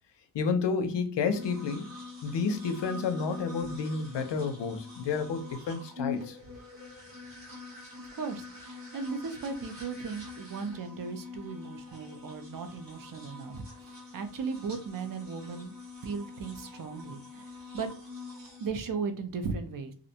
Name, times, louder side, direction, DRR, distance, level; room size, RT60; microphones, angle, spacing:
voice 1, 0.3-2.0 2.2-6.4, left 5 dB, 90° left, 0.6 m, -30 dB
sound 1, 1.3-18.7, left 4 dB, 85° right, 1.2 m, -44 dB
voice 2, 8.1-15.7 16.0-17.5 17.7-17.9 18.6-19.9, right 5 dB, 55° right, 0.5 m, -37 dB
2.5 x 2.1 x 2.7 m
wide cardioid pair, 155°, 41 cm